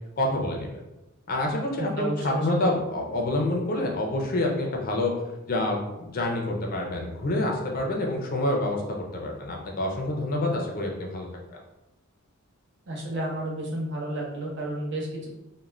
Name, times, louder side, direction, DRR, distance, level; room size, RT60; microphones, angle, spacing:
voice 1, 0.2-0.8 1.3-5.1 5.5-8.8 9.1-11.3 11.5-11.6, left 1 dB, 45° left, 0 dB, 0.5 m, -27 dB
voice 2, 1.8-2.7 12.9-15.3, right 1 dB, 55° right, -2 dB, 0.7 m, -31 dB
2.4 x 2.1 x 3.1 m, 0.96 s
head